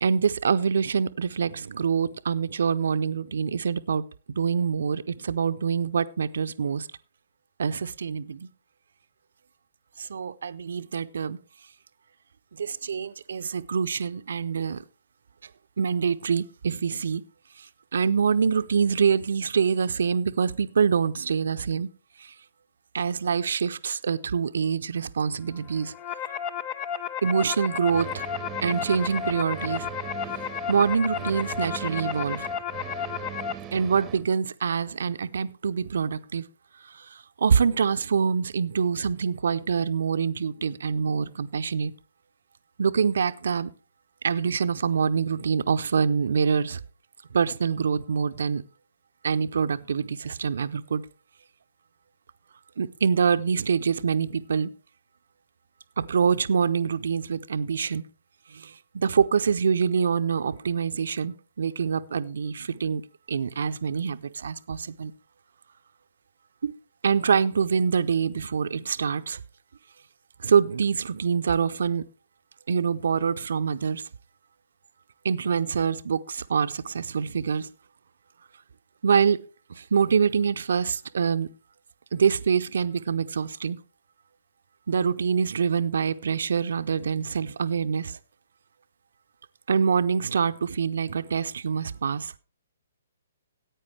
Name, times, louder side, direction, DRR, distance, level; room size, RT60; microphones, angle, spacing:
voice 1, 0.0-6.9 7.6-8.5 10.0-11.4 12.5-14.8 15.8-17.2 17.6-17.7 17.9-21.9 22.2-22.3 22.9-25.9 27.2-28.2 28.6-29.9 30.7-32.5 33.7-36.5 36.8-41.9 42.8-43.7 44.2-46.8 47.3-48.6 49.2-51.0 52.8-54.7 56.0-58.1 58.5-63.0 63.3-65.1 66.6-66.7 67.0-69.4 70.4-72.1 72.7-74.0 75.2-77.7 79.0-79.4 79.7-81.5 82.1-83.8 84.9-88.2 89.7-92.3, right 6 dB, 60° right, 0.6 m, -25 dB
sound 1, 25.7-33.5, left 8 dB, 25° left, 0.6 m, -33 dB
sound 2, 27.9-34.2, right 10 dB, 20° right, 0.8 m, -40 dB
14.5 x 8.9 x 3.3 m
figure-of-eight pair, 125°, 0 cm